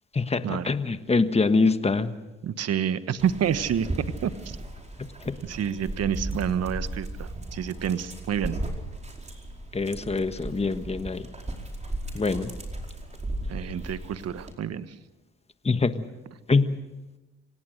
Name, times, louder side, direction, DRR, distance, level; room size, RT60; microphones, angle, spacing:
voice 1, 0.1-2.1 5.2-5.4 9.7-11.2 12.1-12.5 15.6-16.1 16.5-16.8, left 3 dB, 20° left, 10 dB, 1.4 m, -24 dB
voice 2, 2.4-3.9 4.2-4.6 5.4-8.6 13.5-14.9, right 8 dB, 55° right, 13 dB, 1.2 m, -28 dB
Dog, 3.2-14.5, right 1 dB, 25° right, 4.9 m, -36 dB
26.0 x 18.0 x 6.5 m, 1.0 s
supercardioid pair, 65°, 29 cm